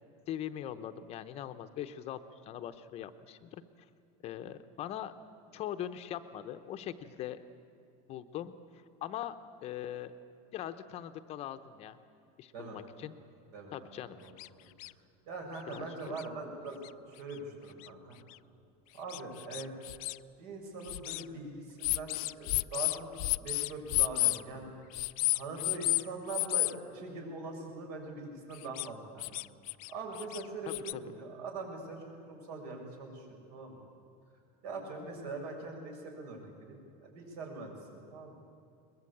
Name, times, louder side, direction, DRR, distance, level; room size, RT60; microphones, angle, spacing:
voice 1, 0.3-3.6 4.2-5.1 5.5-7.4 8.1-9.4 9.6-10.1 10.5-12.0 12.4-13.2 13.7-14.2 15.7-16.2 25.6-25.8 30.7-31.0, left 11 dB, 30° left, 10 dB, 0.8 m, -41 dB
voice 2, 13.5-14.3 14.6-14.7 15.3-16.8 17.1-18.2 18.9-19.7 20.4-23.1 23.4-24.7 25.3-29.3 29.9-33.8 34.6-37.7 38.1-38.3, right 3 dB, 75° right, 2 dB, 6.5 m, -42 dB
sound 1, 14.4-14.5 14.8-14.9 15.7-15.8 16.2-16.3 16.8-16.9 17.8-17.9 18.3-18.4 19.1-20.2 20.8-21.2 21.8-24.4 24.9-26.0 26.3-26.7 28.6-28.9 29.2-29.9 30.2-30.9, left 23 dB, 65° left, 0.5 m, -31 dB
22.0 x 21.0 x 8.6 m, 2.5 s
supercardioid pair, 165°, 20 cm